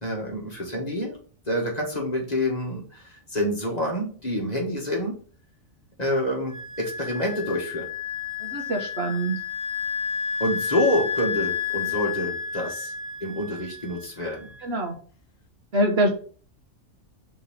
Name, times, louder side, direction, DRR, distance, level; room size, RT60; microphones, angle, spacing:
voice 1, 0.0-1.2 1.5-5.1 6.0-7.9 10.4-12.9 13.2-14.5, left 1 dB, 30° left, -1 dB, 1.8 m, -27 dB
Wind instrument woodwind instrument, 6.5-14.8, left 6 dB, 80° left, 1.4 m, -31 dB
voice 2, 8.4-9.4 14.6-15.0 15.7-16.1, right 1 dB, 55° right, 2 dB, 1.4 m, -24 dB
5.6 x 3.8 x 5.6 m, 0.42 s
omnidirectional pair, 1.3 m